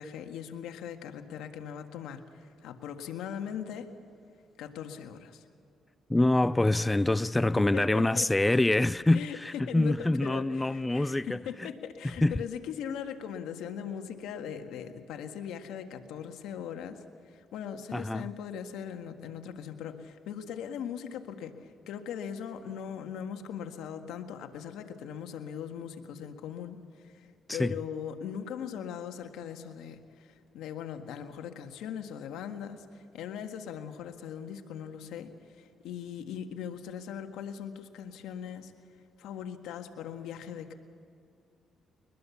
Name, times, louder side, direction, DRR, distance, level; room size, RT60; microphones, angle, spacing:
voice 1, 0.0-3.9 4.6-5.4 7.6-8.3 9.1-9.4 9.6-17.0 17.3-38.7 39.2-40.7, left 8 dB, 90° left, 1.7 m, -40 dB
voice 2, 6.1-11.7 12.0-12.4 17.9-18.3 27.5-27.8, left 2 dB, 15° left, 0.4 m, -26 dB
22.5 x 21.5 x 7.2 m
cardioid pair, 90°, 0 cm